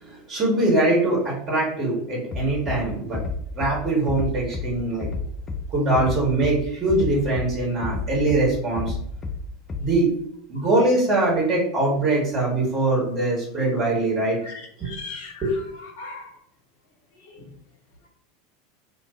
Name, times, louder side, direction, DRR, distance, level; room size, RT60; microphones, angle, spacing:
voice 1, 0.0-3.2 3.5-5.1 5.7-9.0 9.8-10.1 10.5-14.4 14.8-14.9 15.4-15.5, right 2 dB, 30° right, -3 dB, 1.4 m, -22 dB
Bass drum, 2.3-2.8 3.1-3.7 4.1-4.7 5.0-5.6 5.9-6.5 6.9-7.5 7.8-8.4 8.8-9.4 9.7-9.8, left 4 dB, 25° left, 0.5 m, -29 dB
voice 2, 14.4-15.6 16.0-16.3, left 4 dB, 65° left, 0 dB, 0.9 m, -38 dB
2.5 x 2.4 x 3.6 m, 0.71 s
figure-of-eight pair, 80°, 0 cm